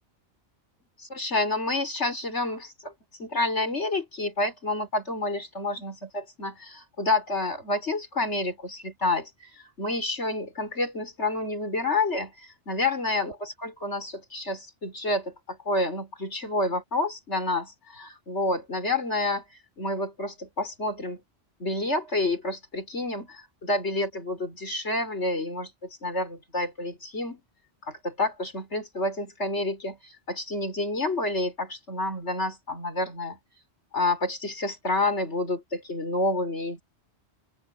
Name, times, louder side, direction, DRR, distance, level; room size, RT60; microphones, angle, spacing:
voice 1, 1.0-2.9 3.2-19.4 19.8-21.2 21.6-27.4 27.9-33.4 33.9-36.8, left 2 dB, 70° left, 5.4 m, -29 dB
open air
omnidirectional pair, 1.2 m